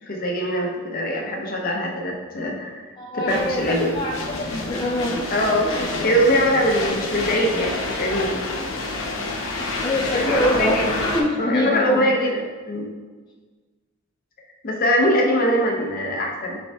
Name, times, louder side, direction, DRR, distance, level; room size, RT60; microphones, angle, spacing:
voice 1, 0.0-3.9 5.3-8.3 10.1-10.9 11.4-12.9 14.6-16.6, equal, 45° left, 0 dB, 0.7 m, -22 dB
voice 2, 3.0-5.2 5.6-5.9 9.8-12.0 15.1-15.2 15.6-15.8, left 1 dB, 20° left, -2 dB, 0.3 m, -25 dB
sound 1, 3.3-11.2, left 2 dB, 85° left, 0.7 m, -28 dB
6.8 x 3.5 x 2.2 m, 1.4 s
head